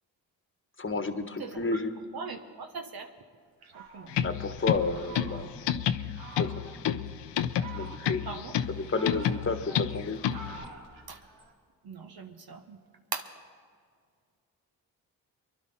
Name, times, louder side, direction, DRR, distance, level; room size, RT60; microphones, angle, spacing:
voice 1, 0.8-1.9 4.2-5.5 6.4-6.9 7.7-8.3 8.8-10.2, left 3 dB, 25° left, 8 dB, 1.4 m, -31 dB
voice 2, 1.4-1.8 2.1-3.1 3.7-4.2 8.2-8.5 11.1-11.2 11.8-12.8 13.1-13.3, right 5 dB, 55° right, 6 dB, 1.2 m, -40 dB
Fowl, 3.6-5.7 6.2-6.8 7.4-8.3 8.7-11.5, right 3 dB, 85° right, 1.8 m, -47 dB
sound 1, 4.1-10.6, left 10 dB, 70° left, 0.7 m, -31 dB
24.0 x 11.0 x 4.3 m, 2.1 s
supercardioid pair, 45°, 44 cm